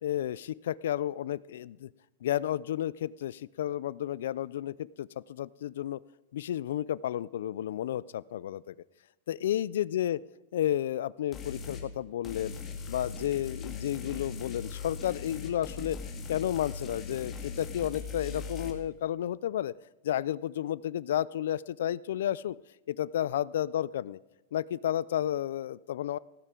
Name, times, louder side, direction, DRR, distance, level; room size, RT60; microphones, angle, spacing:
voice 1, 0.0-1.9 2.2-6.0 6.3-8.7 9.3-10.2 10.5-12.6 12.9-16.0 16.3-19.8 20.0-22.6 22.9-24.2 24.5-26.2, left 11 dB, 80° left, 21 dB, 0.3 m, -32 dB
sound 1, 11.3-11.9 12.2-18.7, left 4 dB, 20° left, 1.8 m, -40 dB
17.0 x 9.9 x 3.8 m, 1.1 s
supercardioid pair, 160°, 0 cm